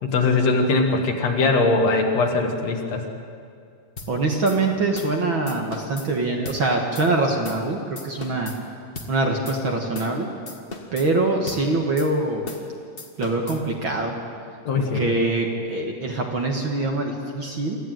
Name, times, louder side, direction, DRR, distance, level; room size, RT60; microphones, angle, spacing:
voice 1, 0.0-3.0 14.7-15.1, left 3 dB, 60° left, 3 dB, 2.6 m, -21 dB
sound 1, 4.0-4.1 4.5-4.6 5.0-5.2 5.5-6.1 6.5-6.6 7.0-7.1 7.4-7.7 8.0-8.6 9.0-9.1 9.5-9.6 9.9-10.2 10.5-11.1 11.5-11.6 12.0-12.1 12.5-12.7 13.0-13.6, left 3 dB, 30° left, 1.1 m, -37 dB
voice 2, 4.1-8.5 9.1-10.3 10.9-12.4 13.2-14.1 14.8-17.8, right 2 dB, 45° right, 1 dB, 2.0 m, -24 dB
25.0 x 15.0 x 9.1 m, 2.4 s
omnidirectional pair, 3.7 m